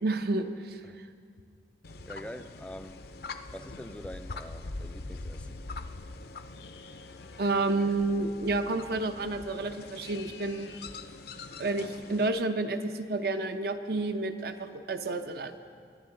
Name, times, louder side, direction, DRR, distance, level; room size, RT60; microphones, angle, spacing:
voice 1, 0.0-1.1 7.4-10.7 11.6-15.6, right 2 dB, 55° right, 0.7 m, -30 dB
sound 1, 1.8-12.3, left 3 dB, 55° left, 0.5 m, -43 dB
voice 2, 2.1-3.0 3.5-5.6, equal, 5° left, 0.3 m, -44 dB
sound 2, 6.5-7.7 9.8-10.9, left 6 dB, 85° left, 1.0 m, -52 dB
23.5 x 10.5 x 3.8 m
head